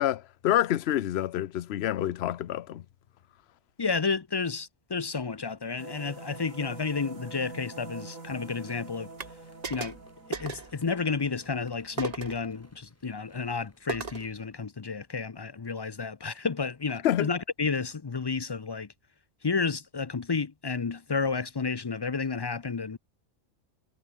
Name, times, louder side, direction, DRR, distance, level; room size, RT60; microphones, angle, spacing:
voice 1, 0.0-2.8 17.0-17.3, left 12 dB, 60° left, 0.8 m, -27 dB
voice 2, 3.8-9.1 9.7-10.0 10.3-18.9 19.4-23.0, left 4 dB, 40° left, 0.3 m, -31 dB
sound 1, 5.8-12.8, right 3 dB, 80° right, 4.2 m, -46 dB
sound 2, 9.2-9.3 9.6-10.0 10.3-10.7 12.0-12.4 13.9-14.3, right 5 dB, 30° right, 1.1 m, -36 dB
sound 3, 9.4-14.5, equal, 10° left, 5.4 m, -62 dB
omnidirectional pair, 1.4 m